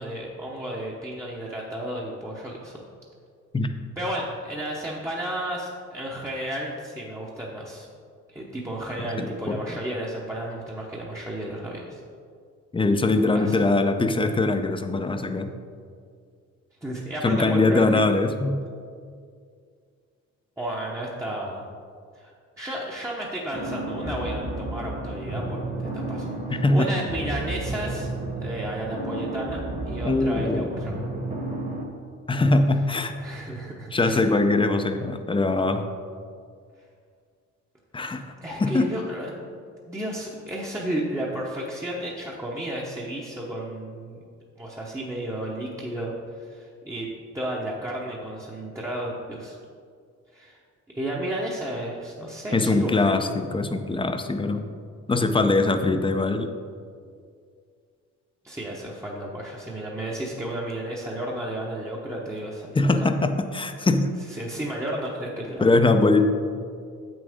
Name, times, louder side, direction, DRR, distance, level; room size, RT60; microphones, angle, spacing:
voice 1, 0.0-2.8 4.0-7.9 8.3-12.0 13.3-13.6 16.8-18.2 20.6-21.7 22.2-22.3 22.6-28.1 28.4-29.6 29.8-30.9 33.2-34.2 38.0-39.5 39.9-44.2 44.6-47.1 47.3-49.6 50.3-50.6 50.9-53.2 58.4-62.9 64.3-65.7, right 1 dB, 10° right, -4 dB, 0.9 m, -33 dB
voice 2, 9.2-9.6 12.7-15.5 17.2-18.6 26.6-26.9 30.0-30.7 32.3-33.1 33.9-35.8 37.9-38.2 38.6-38.9 52.5-54.6 55.1-56.5 62.8-64.1 65.6-66.3, left 2 dB, 15° left, 7 dB, 0.5 m, -22 dB
sound 1, 23.5-31.9, right 2 dB, 30° right, 1.2 m, -32 dB
7.4 x 6.3 x 3.6 m, 2.2 s
cardioid pair, 90°, 30 cm